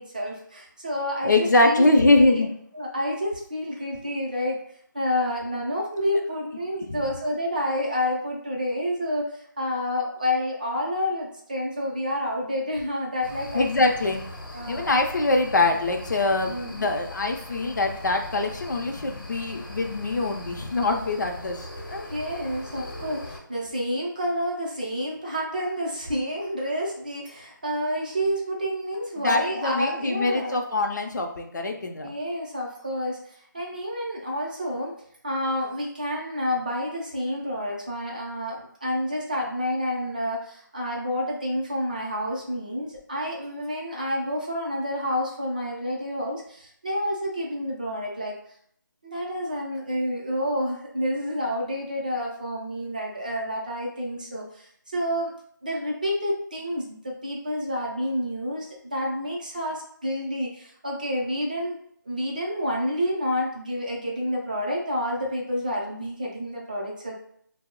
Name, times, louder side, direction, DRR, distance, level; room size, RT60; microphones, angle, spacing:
voice 1, 0.0-2.4 2.7-4.6 4.9-13.8 14.5-14.8 16.5-16.8 22.1-30.6 32.0-34.9 35.2-48.4 49.0-55.3 55.6-61.8 62.0-67.1, equal, 25° right, -2 dB, 0.5 m, -29 dB
voice 2, 1.2-2.5 6.9-7.0 13.5-14.2 14.7-22.1 29.2-32.1, left 2 dB, 60° left, 3 dB, 0.5 m, -23 dB
sound 1, 13.2-23.4, left 1 dB, 90° left, 0.8 m, -40 dB
2.8 x 2.0 x 3.6 m, 0.67 s
figure-of-eight pair, 175°, 11 cm